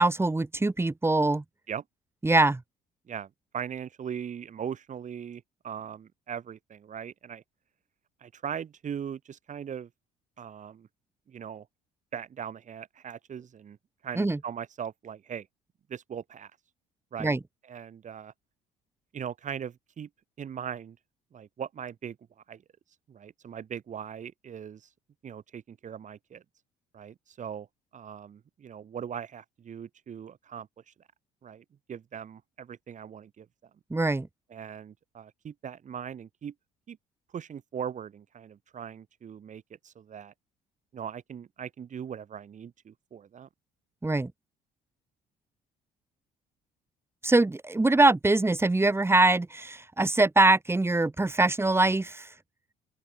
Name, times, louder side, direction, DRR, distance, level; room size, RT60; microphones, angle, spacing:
voice 1, 0.0-1.4 2.2-2.6 14.1-14.4 17.2-17.4 33.9-34.3 44.0-44.3 47.2-52.3, right 2 dB, 10° right, 1.5 m, -23 dB
voice 2, 3.1-7.4 8.2-9.9 10.4-10.9 11.3-11.7 12.1-13.8 14.0-15.5 15.9-16.5 17.1-17.3 17.6-18.3 19.1-20.1 20.4-21.0 21.3-22.2 22.5-22.6 23.1-24.8 25.2-26.4 26.9-27.7 27.9-30.9 31.4-33.5 34.5-36.5 36.9-37.0 37.3-40.3 40.9-43.5, right 8 dB, 40° right, 2.2 m, -40 dB
open air
figure-of-eight pair, 50°, 20 cm